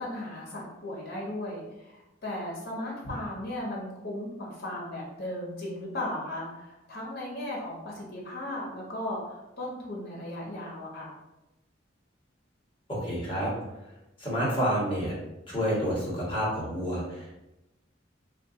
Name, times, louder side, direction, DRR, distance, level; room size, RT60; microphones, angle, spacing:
voice 1, 0.0-11.1, left 1 dB, 55° left, -3 dB, 1.1 m, -36 dB
voice 2, 12.9-13.5 13.8-13.9 14.2-15.1 15.5-17.4, equal, 25° left, -6 dB, 1.2 m, -29 dB
2.5 x 2.4 x 3.7 m, 0.95 s
head